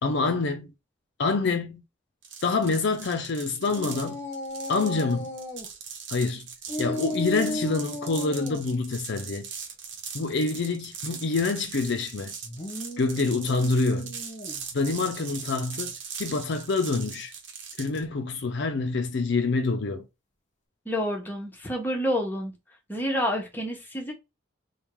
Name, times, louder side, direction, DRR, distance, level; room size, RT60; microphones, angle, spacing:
voice 1, 0.0-0.7 1.2-1.8 2.4-4.2 4.7-5.3 6.1-6.5 6.8-9.5 10.1-12.3 13.0-14.1 14.7-15.9 16.2-17.3 17.8-20.1, left 3 dB, 60° left, 0.5 m, -26 dB
sound 1, 2.2-18.0, right 6 dB, 65° right, 1.0 m, -40 dB
sound 2, 3.7-5.7 6.7-8.6 12.4-14.7, left 1 dB, 35° left, 1.0 m, -35 dB
voice 2, 20.8-22.5 22.9-24.1, equal, 10° left, 1.0 m, -28 dB
3.6 x 2.3 x 4.4 m
head